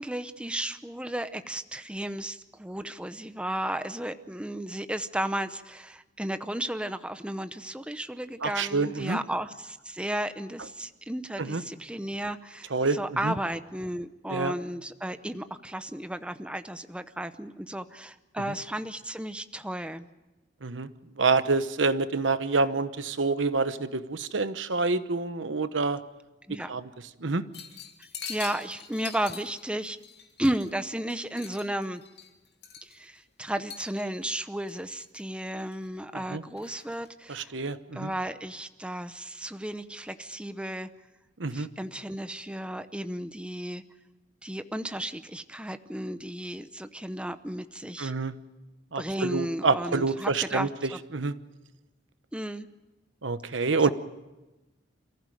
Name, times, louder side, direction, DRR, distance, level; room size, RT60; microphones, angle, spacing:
voice 1, 0.0-20.0 26.5-26.7 28.3-30.0 30.4-32.0 32.8-37.5 37.9-40.9 41.5-43.8 44.4-48.1 48.9-51.0 52.3-52.7 53.8-53.9, right 1 dB, 5° right, 10 dB, 0.8 m, -34 dB
voice 2, 8.4-9.2 11.4-11.6 12.7-13.0 13.2-13.3 14.3-14.5 20.6-20.9 21.2-26.0 26.7-26.9 27.2-27.4 36.3-36.4 37.3-38.1 41.4-41.7 48.0-48.3 48.9-50.7 51.1-51.3 53.2-53.9, right 3 dB, 80° right, 12 dB, 1.1 m, -27 dB
sound 1, 27.5-30.8 31.1-33.2 33.7-34.3 34.7-35.2 35.6-36.1 36.6-37.1, left 7 dB, 60° left, 2.6 m, -44 dB
28.0 x 15.0 x 9.2 m, 1.1 s
head